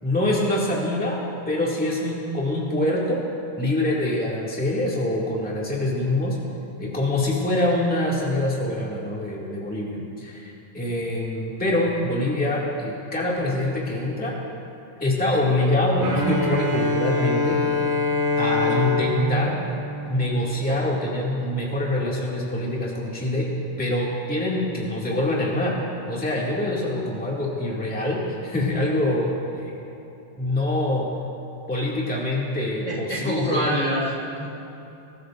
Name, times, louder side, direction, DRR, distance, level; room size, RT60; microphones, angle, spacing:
voice 1, 0.0-1.2 1.5-3.2 3.6-6.4 6.8-14.4 15.0-17.6 18.4-19.6 20.1-23.5 23.8-25.8 26.1-29.8 30.4-31.0 31.7-33.6, left 1 dB, 5° left, -5 dB, 0.9 m, -25 dB
Bowed string instrument, 16.0-20.8, left 2 dB, 90° right, 4.8 m, -25 dB
voice 2, 32.8-34.5, equal, 85° left, -6 dB, 0.6 m, -26 dB
23.5 x 14.0 x 2.6 m, 2.9 s
omnidirectional pair, 4.3 m